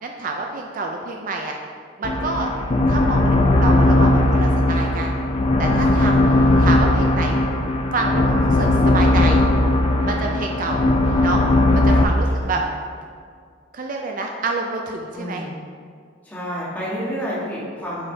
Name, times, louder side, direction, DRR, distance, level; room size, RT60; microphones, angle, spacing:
voice 1, 0.0-1.6 2.0-2.5 2.9-5.2 5.6-6.3 6.6-7.4 7.9-9.4 10.0-10.8 11.2-11.4 11.7-12.6 13.7-15.5, right 3 dB, 45° right, 2 dB, 0.4 m, -27 dB
sound 1, 2.0-11.6, equal, 90° left, 1.2 m, -37 dB
sound 2, 2.0-12.0, left 1 dB, 30° left, 0.4 m, -18 dB
voice 2, 5.8-6.2 10.0-10.2 11.7-12.6 15.1-15.5 16.2-18.1, equal, 10° left, -8 dB, 1.6 m, -31 dB
8.4 x 4.1 x 3.3 m, 2.1 s
head